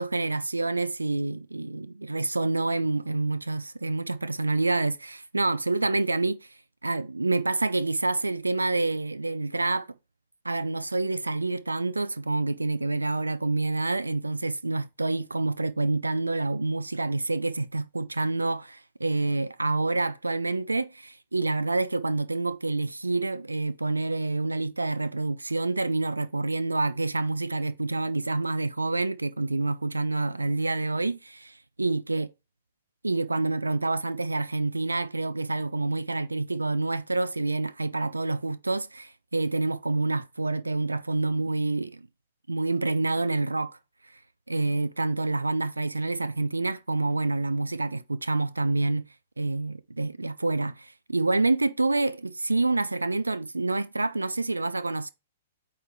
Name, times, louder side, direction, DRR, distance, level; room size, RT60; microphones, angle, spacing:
voice 1, 0.0-6.5 6.8-9.9 10.4-32.3 33.0-42.0 42.5-43.8 44.1-44.2 44.5-49.0 49.4-55.1, right 2 dB, 80° right, 0.4 m, -27 dB
8.8 x 3.2 x 4.5 m
figure-of-eight pair, 110°, 0 cm